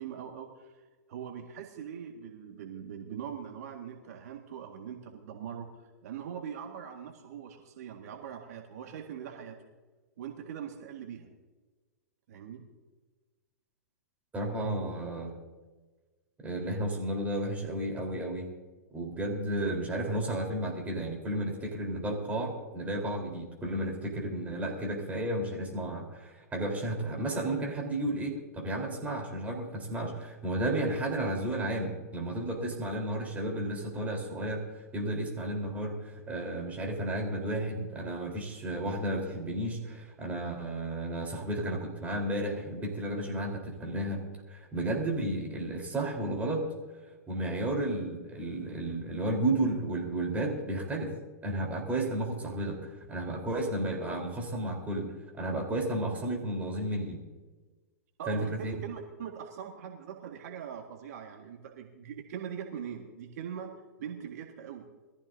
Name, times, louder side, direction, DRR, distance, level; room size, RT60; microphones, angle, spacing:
voice 1, 0.0-5.7 6.0-9.6 10.2-11.3 12.3-12.6 58.2-63.7 64.0-64.9, right 8 dB, 65° right, 3 dB, 1.8 m, -42 dB
voice 2, 14.3-15.3 16.4-18.5 18.9-44.2 44.5-46.7 47.3-51.1 51.4-57.2 58.3-58.7, right 1 dB, 15° right, 1 dB, 3.9 m, -33 dB
22.5 x 14.5 x 2.7 m, 1.3 s
hypercardioid pair, 115°, 9 cm